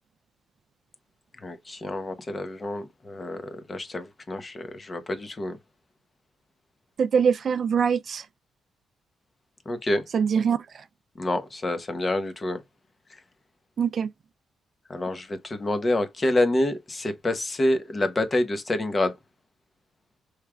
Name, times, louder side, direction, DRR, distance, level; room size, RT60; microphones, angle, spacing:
voice 1, 1.4-5.6 9.7-10.0 11.2-12.6 14.9-19.1, left 1 dB, 30° left, 0.8 m, -27 dB
voice 2, 7.0-8.2 10.1-10.6 13.8-14.1, right 6 dB, 55° right, 0.3 m, -23 dB
4.7 x 3.2 x 2.2 m
cardioid pair, 90°, 0 cm